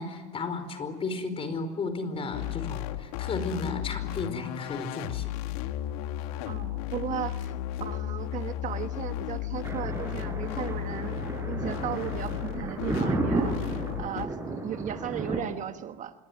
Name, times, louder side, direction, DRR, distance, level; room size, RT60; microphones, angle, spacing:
voice 1, 0.0-5.3, left 3 dB, 30° left, 10 dB, 4.8 m, -34 dB
sound 1, 2.3-14.3, left 13 dB, 80° left, 1.6 m, -34 dB
voice 2, 6.4-16.1, right 10 dB, 45° right, 9 dB, 1.3 m, -36 dB
Thunder, 9.6-15.4, right 2 dB, 15° right, 5.8 m, -32 dB
26.5 x 22.5 x 9.5 m, 1.2 s
supercardioid pair, 110°, 19 cm